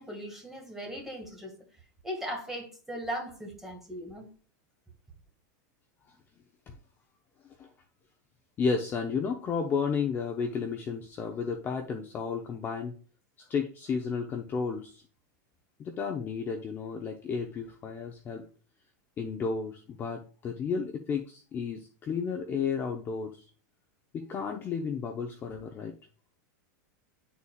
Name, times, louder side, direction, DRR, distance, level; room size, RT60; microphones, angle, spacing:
voice 1, 0.0-1.5 2.0-4.3, equal, 5° right, 2.0 m, -38 dB
voice 2, 8.6-12.9 13.4-15.0 15.8-18.4 19.2-23.5 24.1-25.9, left 5 dB, 20° left, 0.8 m, -32 dB
11.0 x 4.2 x 2.4 m
supercardioid pair, 155°, 10 cm